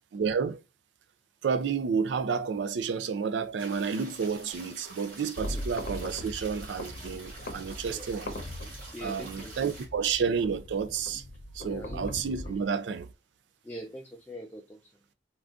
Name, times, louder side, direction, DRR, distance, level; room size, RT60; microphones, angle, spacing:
voice 1, 0.1-0.6 1.4-8.3 9.0-11.2 11.5-13.1, right 6 dB, 70° right, 0.4 m, -30 dB
sound 1, 3.6-9.9, right 3 dB, 50° right, 1.7 m, -47 dB
sound 2, 5.4-12.6, left 1 dB, 60° left, 0.7 m, -40 dB
voice 2, 8.9-9.5 11.6-12.0 12.4-12.5 13.6-14.8, equal, 10° left, 0.3 m, -42 dB
3.8 x 2.3 x 2.4 m
head